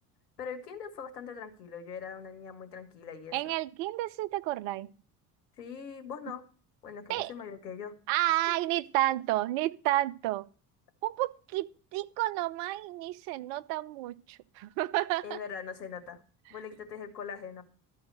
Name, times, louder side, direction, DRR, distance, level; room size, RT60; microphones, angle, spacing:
voice 1, 0.4-3.4 5.6-6.4 6.8-7.9 8.5-8.6 15.2-16.2 16.5-17.6, left 6 dB, 85° left, 1.7 m, -41 dB
voice 2, 3.3-4.9 7.1-7.3 8.1-10.5 11.0-15.4, right 16 dB, 65° right, 0.8 m, -31 dB
12.5 x 4.9 x 7.6 m
hypercardioid pair, 60°, 47 cm